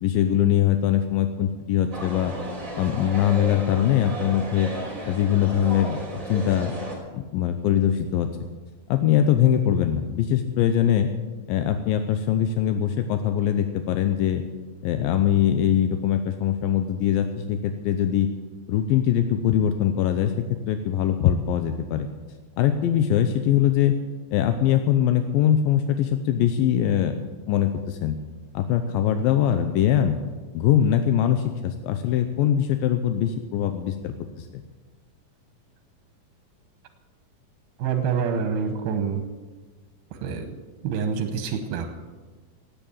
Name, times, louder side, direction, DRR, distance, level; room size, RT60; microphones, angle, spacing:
voice 1, 0.0-2.3 2.8-4.7 5.1-6.0 6.3-6.7 7.1-8.3 8.9-11.1 11.5-14.4 14.8-18.3 18.7-20.3 20.7-22.1 22.6-23.9 24.3-28.2 28.5-30.2 30.5-34.6, left 10 dB, 85° left, 8 dB, 2.4 m, -22 dB
sound 1, 1.9-6.9, right 1 dB, 20° right, 3.4 m, -34 dB
voice 2, 37.8-39.2 40.1-40.6 40.8-41.9, right 6 dB, 85° right, 6 dB, 3.0 m, -26 dB
17.5 x 9.1 x 7.2 m, 1.3 s
omnidirectional pair, 4.1 m